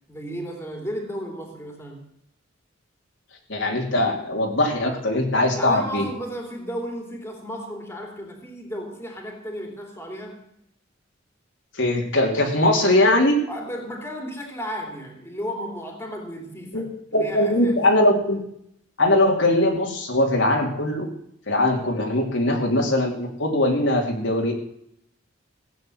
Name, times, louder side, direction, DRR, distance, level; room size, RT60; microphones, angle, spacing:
voice 1, 0.1-2.0 5.5-10.4 13.5-16.8 17.1-17.8, equal, 10° left, 2 dB, 3.0 m, -34 dB
voice 2, 3.5-6.1 11.7-13.4 16.7-18.4 19.0-21.1 21.5-24.5, left 1 dB, 65° left, 1 dB, 2.8 m, -21 dB
16.0 x 8.6 x 7.8 m, 0.71 s
head